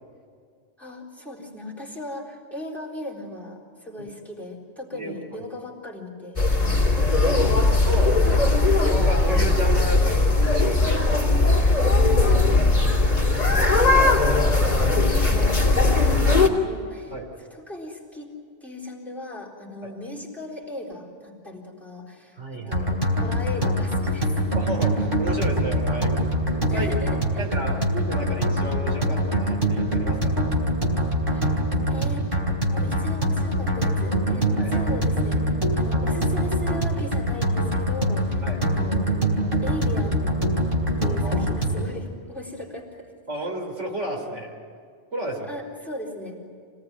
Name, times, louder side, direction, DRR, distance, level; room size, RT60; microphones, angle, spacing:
voice 1, 0.8-6.9 7.2-7.9 12.3-13.2 13.5-18.3 18.6-24.4 26.7-27.5 31.3-31.5 31.9-32.2 32.7-39.1 39.6-40.4 41.0-43.1 45.5-46.4, left 1 dB, ahead, -2 dB, 4.0 m, -37 dB
voice 2, 4.9-5.4 7.9-8.5 8.8-11.2 12.2-12.6 17.1-17.3 19.8-19.9 22.4-22.9 24.5-26.3 26.7-27.0 27.4-30.3 34.6-34.7 38.4-38.6 41.2-41.5 43.3-44.5 45.1-45.6, right 1 dB, 75° right, 1 dB, 3.6 m, -32 dB
sound 1, 6.4-16.5, left 2 dB, 35° left, 3.0 m, -19 dB
sound 2, 22.7-41.9, equal, 45° right, 3.5 m, -24 dB
26.5 x 18.5 x 9.7 m, 2.2 s
omnidirectional pair, 1.2 m